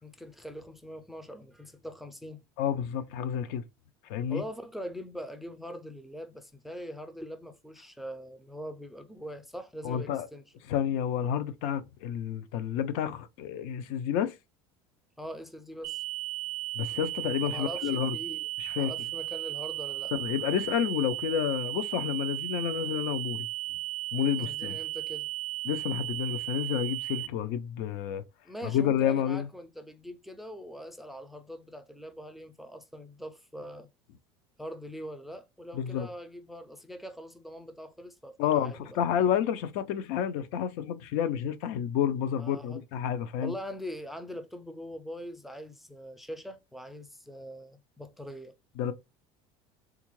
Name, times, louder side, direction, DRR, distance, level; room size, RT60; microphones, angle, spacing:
voice 1, 0.0-2.4 4.3-10.5 15.2-16.0 17.4-18.5 18.8-20.1 24.4-25.3 28.4-33.9 34.6-39.0 42.4-42.8 43.4-48.6, equal, ahead, 0.3 m, -42 dB
voice 2, 2.6-3.6 4.1-4.4 9.8-10.3 10.7-14.3 16.8-18.2 18.6-18.9 20.1-23.5 24.1-24.8 25.7-28.2 28.6-29.5 35.7-36.1 38.4-43.5 48.8-48.9, left 9 dB, 70° left, 0.5 m, -30 dB
sound 1, 15.8-27.3, right 18 dB, 80° right, 0.4 m, -35 dB
3.6 x 2.4 x 3.0 m
supercardioid pair, 130°, 12 cm